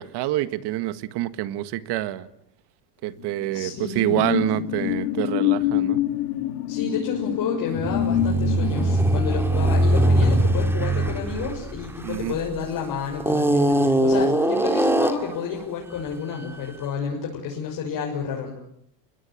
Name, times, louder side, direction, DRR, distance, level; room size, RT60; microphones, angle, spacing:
voice 1, 0.0-2.3 3.0-6.0 12.0-12.4, right 15 dB, 55° right, 13 dB, 1.9 m, -27 dB
sound 1, 3.1-12.1 12.5-12.7, left 12 dB, 90° left, 2.6 m, -27 dB
voice 2, 3.5-4.7 6.7-18.5, left 5 dB, 45° left, -1 dB, 6.7 m, -30 dB
sound 2, 7.8-12.6 13.2-15.4, right 1 dB, 5° right, 2.5 m, -21 dB
30.0 x 22.0 x 8.7 m, 0.73 s
supercardioid pair, 130°, 48 cm